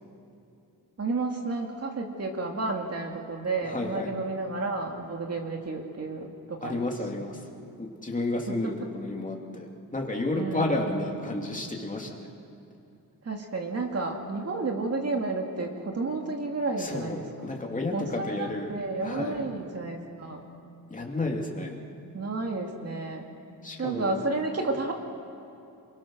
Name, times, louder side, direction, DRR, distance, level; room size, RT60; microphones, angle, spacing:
voice 1, 1.0-6.8 8.5-8.6 10.3-10.9 13.2-17.6 17.9-20.5 22.1-23.3 23.8-24.9, right 3 dB, 40° right, 2 dB, 2.4 m, -31 dB
voice 2, 3.6-4.1 6.6-7.4 7.8-12.3 16.8-17.9 18.2-18.7 19.0-19.4 20.9-21.8 23.6-24.2, left 2 dB, 20° left, 0 dB, 2.9 m, -31 dB
28.0 x 22.0 x 6.4 m, 2.8 s
wide cardioid pair, 120°, 38 cm